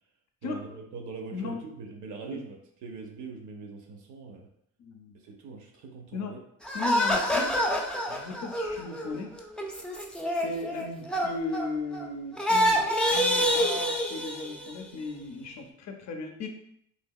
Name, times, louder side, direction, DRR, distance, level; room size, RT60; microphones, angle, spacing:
voice 1, 0.4-4.5 5.2-6.4, right 4 dB, 75° right, 2 dB, 0.6 m, -42 dB
voice 2, 4.8-5.2 6.1-6.3 6.7-7.5 8.1-9.3 10.4-16.5, left 3 dB, 65° left, 4 dB, 0.6 m, -36 dB
sound 1, 6.6-12.0 12.3-14.8, equal, 5° left, 0.4 m, -27 dB
3.2 x 2.8 x 2.2 m, 0.71 s
cardioid pair, 90°, 30 cm